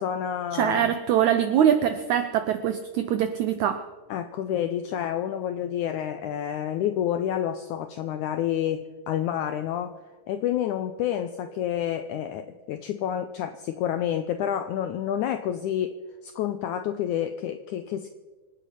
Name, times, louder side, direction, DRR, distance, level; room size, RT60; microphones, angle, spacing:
voice 1, 0.0-0.9 4.1-9.9 10.3-16.0 16.2-18.1, left 10 dB, 90° left, 9 dB, 1.7 m, -29 dB
voice 2, 0.5-3.9, right 9 dB, 85° right, 9 dB, 1.6 m, -23 dB
25.0 x 9.2 x 5.8 m, 1.3 s
omnidirectional pair, 4.3 m